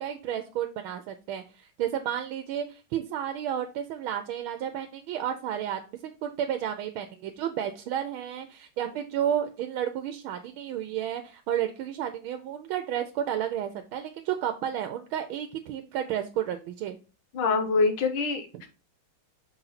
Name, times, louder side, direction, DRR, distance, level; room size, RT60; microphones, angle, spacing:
voice 1, 0.0-5.8 6.2-17.0, right 10 dB, 85° right, 6 dB, 1.5 m, -32 dB
voice 2, 17.3-18.7, left 4 dB, 75° left, 6 dB, 1.9 m, -25 dB
6.2 x 4.1 x 4.0 m, 0.32 s
omnidirectional pair, 2.2 m